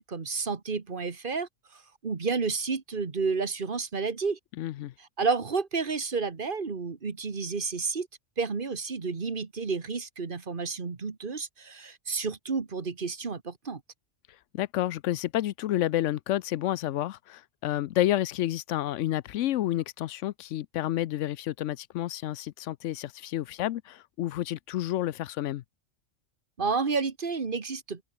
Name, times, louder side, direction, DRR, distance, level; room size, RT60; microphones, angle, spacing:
voice 1, 0.0-1.5 2.0-4.4 5.2-8.1 8.4-13.8 26.6-28.0, right 4 dB, 45° right, 1.7 m, -30 dB
voice 2, 4.6-4.9 14.5-25.6, left 13 dB, 85° left, 0.9 m, -30 dB
open air
omnidirectional pair, 1.2 m